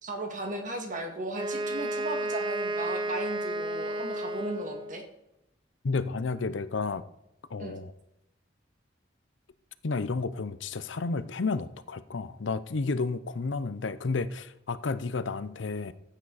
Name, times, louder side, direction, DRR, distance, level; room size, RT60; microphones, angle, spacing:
voice 1, 0.0-5.0 7.6-7.8, right 2 dB, 45° right, 4 dB, 2.1 m, -36 dB
Wind instrument woodwind instrument, 1.3-5.0, right 1 dB, 25° right, 0.9 m, -32 dB
voice 2, 5.8-7.0 7.5-7.9 9.8-15.9, left 4 dB, 80° left, 15 dB, 0.6 m, -31 dB
14.0 x 9.0 x 4.1 m, 0.87 s
head